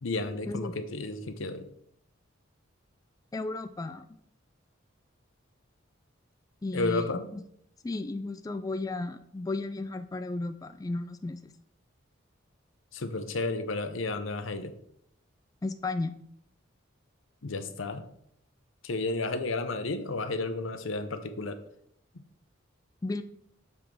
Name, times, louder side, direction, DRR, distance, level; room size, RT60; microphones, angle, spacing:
voice 1, 0.0-1.7 6.7-7.3 12.9-14.7 17.4-18.1 18.8-21.6, left 3 dB, 85° left, 9 dB, 0.8 m, -32 dB
voice 2, 3.3-4.1 6.6-7.4 7.8-11.5 15.6-16.1 23.0-23.2, left 2 dB, 20° left, 8 dB, 0.3 m, -34 dB
7.0 x 3.7 x 6.0 m, 0.71 s
head